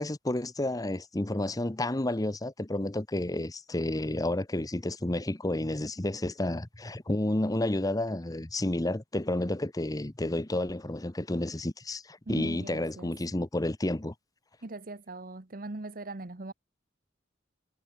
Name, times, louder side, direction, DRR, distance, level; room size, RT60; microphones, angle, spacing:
voice 1, 0.0-14.1, left 1 dB, 20° left, 0.9 m, -31 dB
voice 2, 12.3-13.1 14.6-16.5, right 2 dB, 50° right, 1.2 m, -40 dB
head